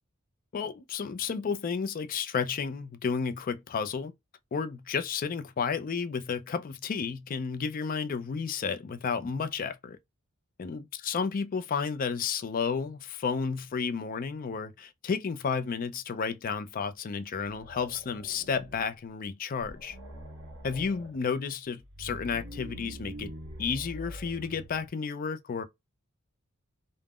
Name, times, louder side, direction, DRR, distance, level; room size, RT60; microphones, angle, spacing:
voice 1, 0.5-4.1 4.5-10.0 10.6-20.0 20.6-23.3 23.6-25.6, left 5 dB, 40° left, 0.4 m, -32 dB
sound 1, 17.4-18.9 19.3-19.4 19.6-21.2 21.8-24.9, equal, 55° right, 1.4 m, -44 dB
3.4 x 2.1 x 2.3 m
head